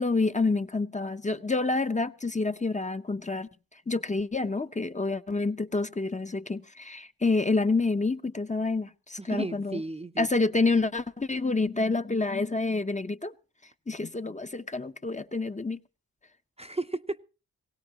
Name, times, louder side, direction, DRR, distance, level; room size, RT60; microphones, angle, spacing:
voice 1, 0.0-3.5 3.9-9.8 10.2-13.3 13.9-15.8, left 3 dB, 20° left, 0.8 m, -28 dB
voice 2, 9.2-10.3 16.6-17.2, right 2 dB, 15° right, 0.7 m, -34 dB
20.0 x 17.0 x 2.9 m
cardioid pair, 50°, 35 cm